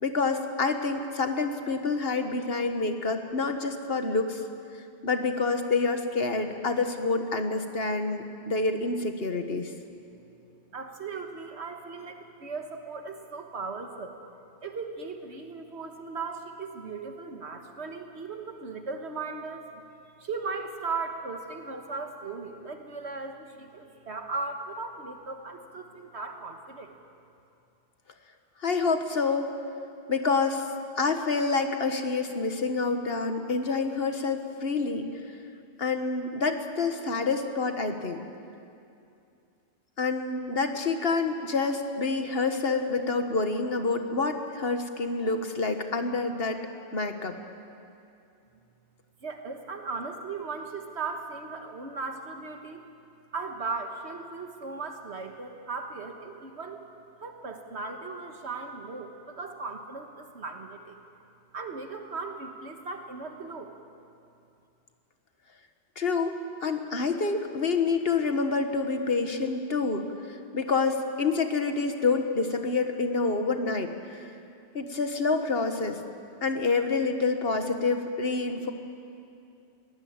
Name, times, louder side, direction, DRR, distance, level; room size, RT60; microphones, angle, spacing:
voice 1, 0.0-4.4 5.0-9.7 28.6-29.5 30.1-30.7 31.0-35.0 35.8-38.2 40.0-46.6 46.9-47.3 66.0-74.3 74.7-76.0 76.4-78.7, left 4 dB, 60° left, 6 dB, 1.6 m, -27 dB
voice 2, 10.7-14.2 14.6-19.8 20.2-26.9 49.2-52.8 53.3-56.8 57.2-61.0 61.5-63.7, right 4 dB, 75° right, 4 dB, 1.7 m, -37 dB
21.5 x 18.0 x 8.8 m, 2.6 s
omnidirectional pair, 1.1 m